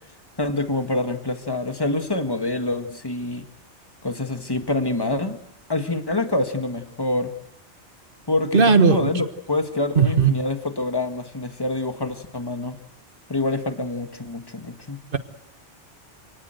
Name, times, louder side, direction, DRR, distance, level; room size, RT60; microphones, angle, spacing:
voice 1, 0.4-3.5 4.0-5.4 5.7-7.3 8.3-12.8 13.3-15.0, left 2 dB, 20° left, 7 dB, 1.7 m, -26 dB
voice 2, 8.5-9.1 10.0-10.3 15.1-15.2, right 5 dB, 50° right, 10 dB, 1.5 m, -16 dB
28.0 x 19.0 x 7.9 m, 0.75 s
omnidirectional pair, 1.2 m